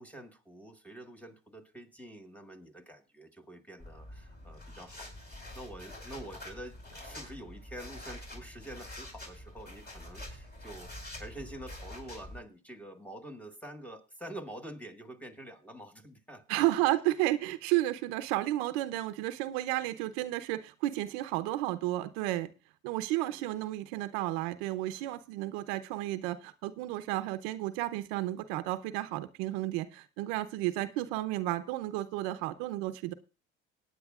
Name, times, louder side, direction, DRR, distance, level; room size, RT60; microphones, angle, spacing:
voice 1, 0.0-16.6 23.3-23.5, right 1 dB, 5° left, 5 dB, 1.5 m, -47 dB
sound 1, 3.8-12.4, left 1 dB, 30° left, 4.9 m, -46 dB
voice 2, 16.5-22.5 22.8-33.1, right 16 dB, 90° right, 12 dB, 0.8 m, -32 dB
19.5 x 9.5 x 2.4 m, 0.31 s
supercardioid pair, 85°, 30 cm